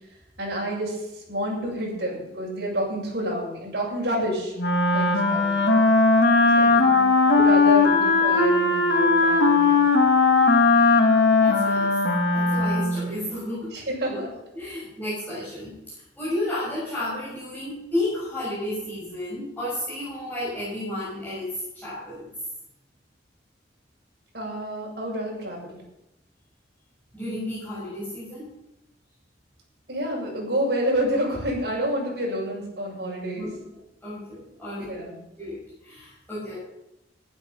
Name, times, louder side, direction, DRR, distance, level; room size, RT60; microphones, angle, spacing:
voice 1, 0.4-1.0 1.3-4.5 4.9-5.7 6.6-6.9 7.3-10.1 13.7-14.3 14.7-14.8 24.3-25.8 29.9-33.5 34.8-35.2, equal, 65° right, -3 dB, 7.1 m, -28 dB
Wind instrument woodwind instrument, 4.6-13.1, left 3 dB, 90° left, 2.5 m, -19 dB
voice 2, 6.5-7.1 11.4-11.9 12.3-13.7 14.1-14.2 14.5-15.8 16.2-22.3 27.1-28.5 33.4-33.5 34.0-35.0 35.4-36.6, left 1 dB, 10° left, -11 dB, 6.8 m, -32 dB
15.0 x 11.5 x 5.5 m, 0.89 s
head